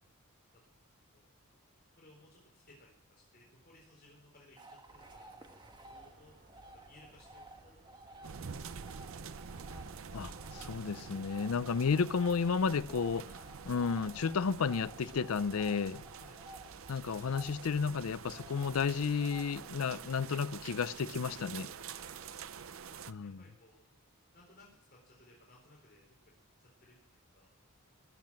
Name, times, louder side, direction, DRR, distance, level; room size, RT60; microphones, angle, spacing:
voice 1, 2.0-6.3 6.7-7.8 16.2-16.4 21.5-22.0 22.9-23.8 24.3-27.5, left 2 dB, 45° left, 4.2 m, -62 dB
sound 1, 4.6-23.1, right 1 dB, 20° right, 1.2 m, -56 dB
sound 2, 4.9-18.9, right 1 dB, 45° right, 2.8 m, -58 dB
sound 3, 8.2-23.1, right 6 dB, 65° right, 0.6 m, -47 dB
voice 2, 10.1-13.3 13.7-16.0 16.9-21.7 23.1-23.4, left 5 dB, 75° left, 0.5 m, -32 dB
21.0 x 7.6 x 7.5 m
head